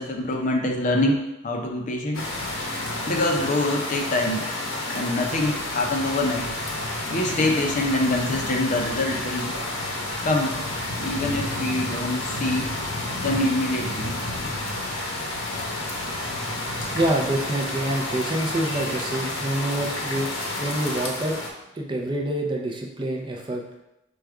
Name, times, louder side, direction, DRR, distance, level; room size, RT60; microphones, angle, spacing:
voice 1, 0.0-2.3 3.1-4.5 4.9-6.5 7.1-9.5 10.2-10.6 11.0-12.7 13.2-14.1, left 1 dB, 40° left, 1 dB, 0.5 m, -25 dB
sound 1, 2.1-21.5, left 2 dB, 75° left, 0.8 m, -30 dB
voice 2, 16.9-20.3 20.6-21.4 21.7-23.6, right 1 dB, 25° right, 0 dB, 0.5 m, -26 dB
4.8 x 2.3 x 4.7 m, 0.91 s
head